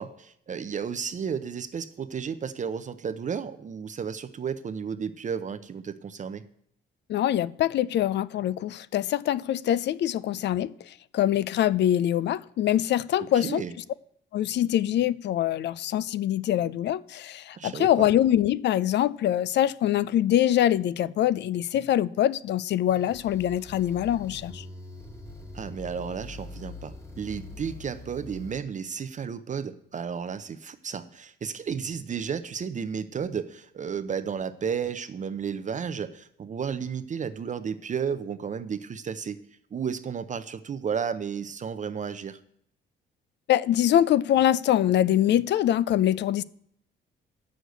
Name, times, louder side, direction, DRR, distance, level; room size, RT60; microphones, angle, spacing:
voice 1, 0.0-6.5 13.2-13.7 17.5-18.1 25.5-39.4 39.7-42.4, right 7 dB, 40° right, 0.6 m, -33 dB
voice 2, 7.1-10.7 11.1-13.6 14.3-24.6 43.5-46.4, left 11 dB, 60° left, 0.4 m, -24 dB
sound 1, 22.9-28.6, left 3 dB, 15° left, 1.5 m, -43 dB
8.1 x 6.4 x 8.0 m
cardioid pair, 90°, 20 cm